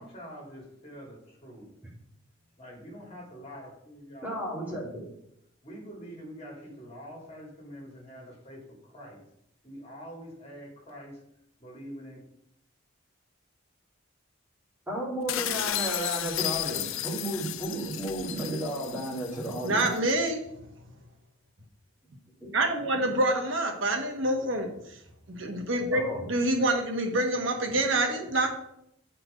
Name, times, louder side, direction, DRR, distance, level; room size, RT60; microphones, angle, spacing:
voice 1, 0.0-1.7 2.6-4.8 5.6-9.2 9.6-11.2 11.6-12.2, equal, 30° left, -2 dB, 2.5 m, -45 dB
voice 2, 4.2-4.9 14.9-19.9 22.4-22.5 22.9-23.1 25.9-26.2, right 1 dB, 10° right, -4 dB, 2.3 m, -33 dB
sound 1, 15.3-20.0, left 13 dB, 75° left, 0.4 m, -33 dB
voice 3, 19.6-20.4 22.5-25.0 25.3-28.5, right 1 dB, 70° right, 3 dB, 1.3 m, -27 dB
7.8 x 4.5 x 5.0 m, 0.76 s
head